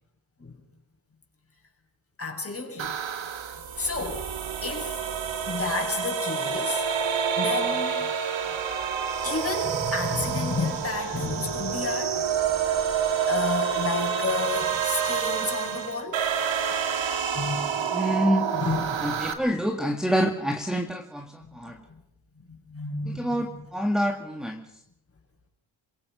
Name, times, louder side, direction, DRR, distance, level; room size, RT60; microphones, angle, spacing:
voice 1, 2.2-3.0 3.8-4.3 4.6-5.0 5.5-6.9 7.1-8.1 9.2-12.2 13.3-16.3 17.3-17.9 18.2-18.3 18.5-19.1 21.5-21.8 22.5-23.3, left 3 dB, 30° left, 2 dB, 6.8 m, -31 dB
sound 1, 2.8-19.3, right 7 dB, 65° right, 2.5 m, -28 dB
voice 2, 17.9-18.5 19.0-21.8 23.1-24.6, equal, ahead, 2 dB, 2.1 m, -27 dB
27.5 x 17.0 x 6.3 m, 0.77 s
cardioid pair, 70°, 49 cm